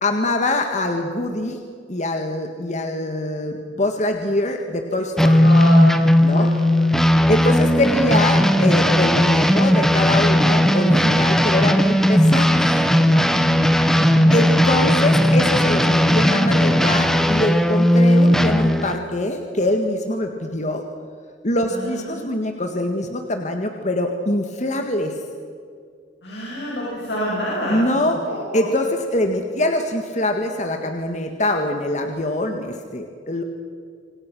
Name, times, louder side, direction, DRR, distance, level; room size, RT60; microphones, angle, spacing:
voice 1, 0.0-1.6 1.9-5.4 6.2-6.5 7.3-13.3 14.3-20.8 21.4-25.2 27.7-28.2 28.5-33.4, left 1 dB, 40° left, 4 dB, 1.8 m, -23 dB
sound 1, 5.2-19.0, equal, ahead, 1.2 m, -16 dB
voice 2, 5.4-6.9 13.6-14.4 21.7-22.3 26.2-27.8 28.3-28.6, equal, 65° left, -6 dB, 7.8 m, -28 dB
26.5 x 26.0 x 6.3 m, 2.2 s
head